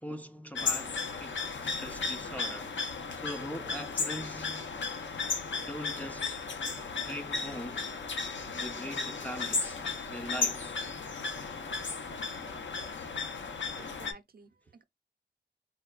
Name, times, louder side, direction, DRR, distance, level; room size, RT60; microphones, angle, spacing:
voice 1, 0.0-2.8 3.1-4.7 5.6-6.4 7.0-8.0 8.5-9.8 10.1-10.8, equal, 10° left, 0.4 m, -42 dB
sound 1, 0.5-14.1, left 4 dB, 80° left, 0.7 m, -35 dB
voice 2, 13.8-14.8, right 4 dB, 55° right, 0.5 m, -53 dB
4.1 x 2.2 x 2.3 m
wide cardioid pair, 85°, 19 cm